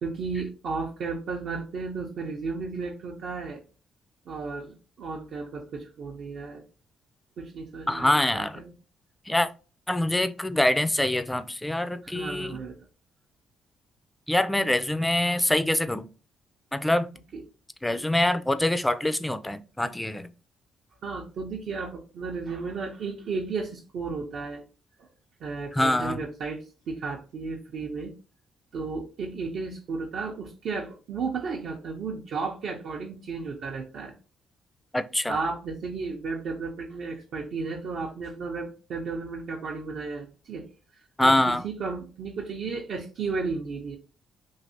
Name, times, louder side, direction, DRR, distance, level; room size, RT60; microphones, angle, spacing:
voice 1, 0.0-3.6 4.3-6.6 7.4-8.7 12.0-12.7 17.3-17.4 21.0-24.6 25.0-25.1 25.4-28.1 28.7-34.1 35.3-40.7 41.2-44.0, right 4 dB, 70° right, 0.5 m, -34 dB
voice 2, 7.9-8.6 9.3-9.5 9.9-12.5 14.3-16.1 16.7-17.1 17.8-20.3 25.7-26.2 34.9-35.4 41.2-41.6, left 1 dB, 10° left, 0.3 m, -24 dB
3.1 x 2.8 x 2.7 m
cardioid pair, 90°, 0 cm